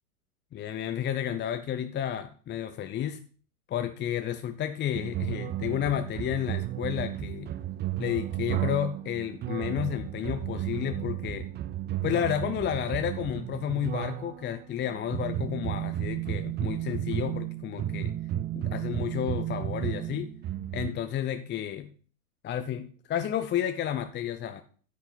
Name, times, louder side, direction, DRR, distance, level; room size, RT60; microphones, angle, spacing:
voice 1, 0.5-3.2 3.7-7.5 8.0-11.5 12.0-18.1 18.5-20.3 20.7-21.9 22.4-24.6, left 10 dB, 25° left, 8 dB, 0.7 m, -31 dB
sound 1, 4.9-20.9, right 12 dB, 25° right, 0.5 m, -33 dB
9.8 x 8.4 x 4.0 m, 0.42 s
hypercardioid pair, 105°, 46 cm